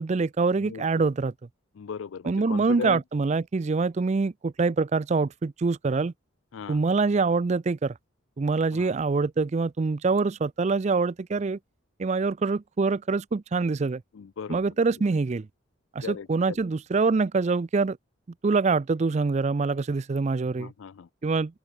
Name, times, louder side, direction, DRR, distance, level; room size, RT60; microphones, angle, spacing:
voice 1, 0.0-1.3 2.3-6.1 6.7-7.9 8.4-11.6 12.0-14.0 14.5-15.5 16.0-18.0 18.4-20.7 21.2-21.6, right 4 dB, 35° right, 0.4 m, -25 dB
voice 2, 0.6-1.1 1.7-3.0 6.5-6.8 8.7-8.9 14.1-14.6 16.0-16.6 20.6-21.1, left 6 dB, 75° left, 0.4 m, -37 dB
open air
head